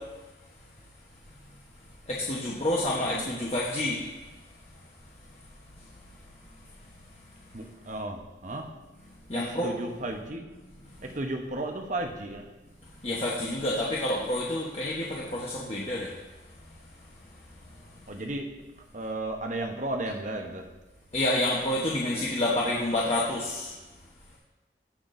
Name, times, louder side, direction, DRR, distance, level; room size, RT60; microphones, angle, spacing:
voice 1, 2.1-4.0 9.3-9.7 13.0-16.1 21.1-23.7, left 1 dB, 35° left, -4 dB, 1.0 m, -28 dB
voice 2, 7.5-8.7 9.3-10.4 11.0-12.5 18.1-18.5 18.9-20.7, right 2 dB, 40° right, 4 dB, 0.9 m, -34 dB
17.5 x 5.9 x 2.6 m, 1.2 s
head